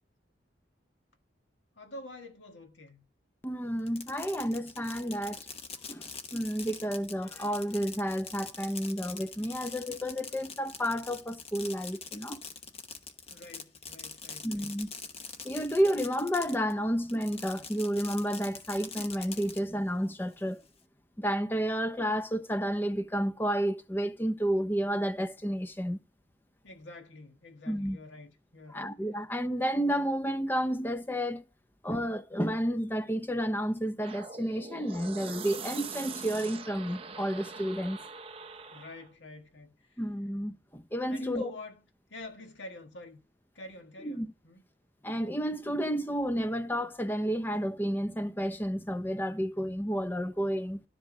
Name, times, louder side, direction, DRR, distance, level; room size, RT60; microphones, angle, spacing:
voice 1, 1.8-3.1 13.3-14.7 26.6-28.9 38.7-40.0 41.1-41.8 42.1-43.2 43.6-44.6, left 2 dB, 85° left, 1.7 m, -47 dB
voice 2, 3.4-5.4 5.9-12.4 14.4-14.9 15.4-20.6 21.2-26.0 27.7-28.0 28.7-31.4 31.8-38.0 40.0-41.5 44.0-44.3 45.0-50.8, equal, 10° left, 0.7 m, -31 dB
Fireworks, 3.8-16.7 17.1-19.6, left 5 dB, 35° left, 1.0 m, -44 dB
sound 1, 34.0-39.1, right 5 dB, 30° right, 0.7 m, -43 dB
13.0 x 6.1 x 5.1 m
head